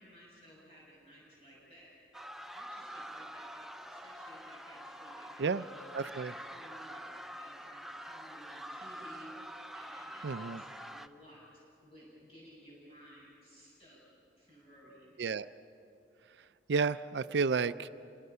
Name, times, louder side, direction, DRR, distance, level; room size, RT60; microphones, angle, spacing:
voice 1, 0.0-1.9 2.5-14.0 14.4-15.1, equal, 30° left, -6 dB, 6.5 m, -56 dB
sound 1, 2.1-11.1, equal, ahead, 0.5 m, -46 dB
voice 2, 5.9-6.3 10.2-10.6 15.2-15.5 16.7-17.9, right 5 dB, 75° right, 13 dB, 0.4 m, -31 dB
28.5 x 24.5 x 5.6 m, 2.6 s
head